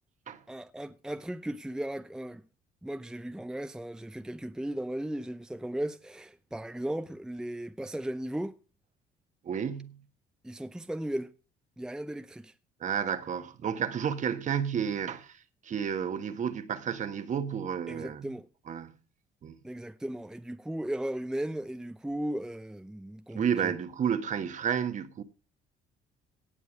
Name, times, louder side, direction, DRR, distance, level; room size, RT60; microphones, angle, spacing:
voice 1, 0.5-2.4 2.8-8.6 10.4-11.3 11.8-12.5 17.9-18.5 19.6-23.7, right 1 dB, 5° right, 0.6 m, -36 dB
voice 2, 9.4-10.0 12.8-15.4 15.6-18.3 18.7-19.0 19.4-19.5 23.3-25.2, right 8 dB, 45° right, 1.4 m, -31 dB
17.5 x 6.9 x 6.1 m
cardioid pair, 110°, 17 cm